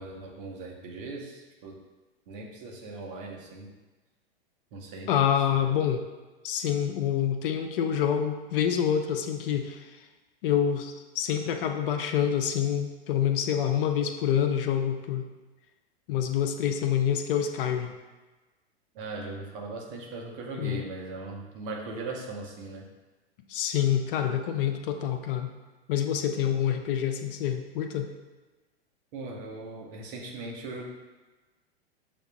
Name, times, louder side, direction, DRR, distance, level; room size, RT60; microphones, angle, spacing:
voice 1, 0.0-1.8 2.3-3.7 4.7-5.1 5.5-5.7 18.9-22.9 29.1-30.9, right 3 dB, 55° right, -1 dB, 1.0 m, -39 dB
voice 2, 5.1-6.0 6.4-9.9 10.4-15.3 16.1-17.9 20.6-20.8 23.5-25.5 25.9-28.1, left 9 dB, 55° left, 6 dB, 0.5 m, -27 dB
6.9 x 2.3 x 2.3 m, 1.2 s
hypercardioid pair, 100°, 32 cm